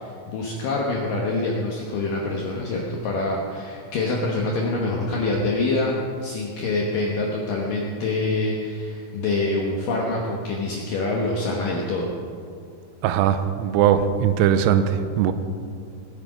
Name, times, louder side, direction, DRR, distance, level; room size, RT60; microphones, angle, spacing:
voice 1, 0.0-5.9 6.2-12.1, left 2 dB, 85° left, -2 dB, 1.9 m, -25 dB
voice 2, 13.0-15.3, right 9 dB, 80° right, 10 dB, 2.8 m, -20 dB
19.5 x 8.6 x 5.2 m, 2.3 s
omnidirectional pair, 5.7 m